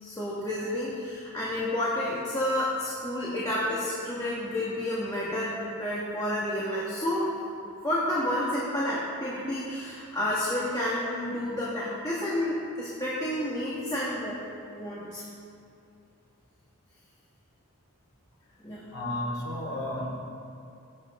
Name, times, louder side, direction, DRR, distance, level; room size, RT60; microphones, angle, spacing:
voice 1, 0.0-7.3 7.6-14.4 14.7-15.2 18.6-18.9, left 1 dB, 15° left, -7 dB, 1.5 m, -30 dB
voice 2, 18.9-20.1, left 1 dB, 85° left, -4 dB, 2.9 m, -32 dB
17.0 x 8.7 x 3.7 m, 2.6 s
head